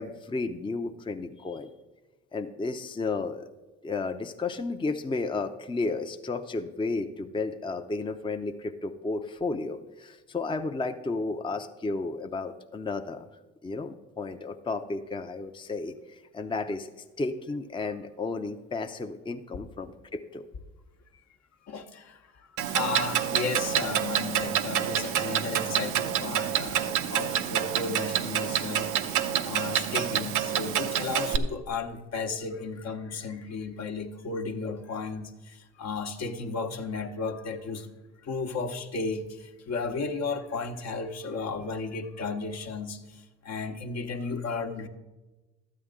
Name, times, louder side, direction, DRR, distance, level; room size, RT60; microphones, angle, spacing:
voice 1, 0.0-1.7 2.3-3.5 3.8-13.3 13.6-20.5, left 3 dB, 15° left, 7 dB, 0.6 m, -33 dB
voice 2, 21.6-37.9 38.2-44.9, left 4 dB, 55° left, 5 dB, 1.0 m, -34 dB
Clock, 22.6-31.4, right 10 dB, 70° right, 0.7 m, -28 dB
12.5 x 8.6 x 3.7 m, 1.1 s
hypercardioid pair, 60°, 31 cm